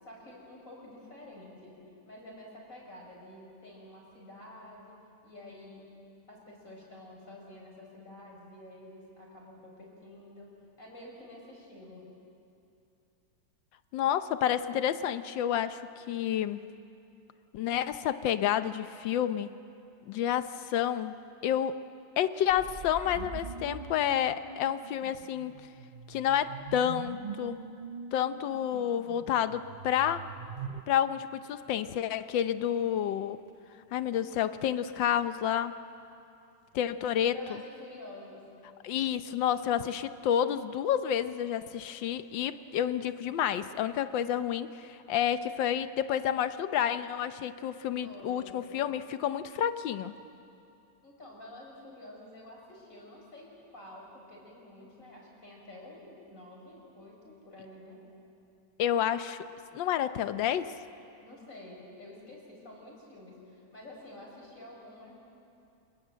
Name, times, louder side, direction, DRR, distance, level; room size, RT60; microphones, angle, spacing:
voice 1, 0.0-1.8 2.1-5.0 5.2-5.9 6.3-10.5 10.8-12.0 37.3-38.5 48.0-48.6 51.0-53.5 53.7-58.0 61.2-65.2, left 1 dB, 45° left, -2 dB, 5.4 m, -49 dB
voice 2, 13.9-16.6 17.5-19.5 20.1-21.7 22.2-25.5 26.1-27.6 28.1-30.3 30.9-33.4 33.9-35.8 36.7-37.6 38.8-50.1 58.8-59.4 59.7-60.7, left 10 dB, 85° left, 12 dB, 1.5 m, -30 dB
sound 1, 22.5-30.8, right 6 dB, 75° right, 0.4 m, -43 dB
26.5 x 20.0 x 7.7 m, 2.6 s
omnidirectional pair, 2.0 m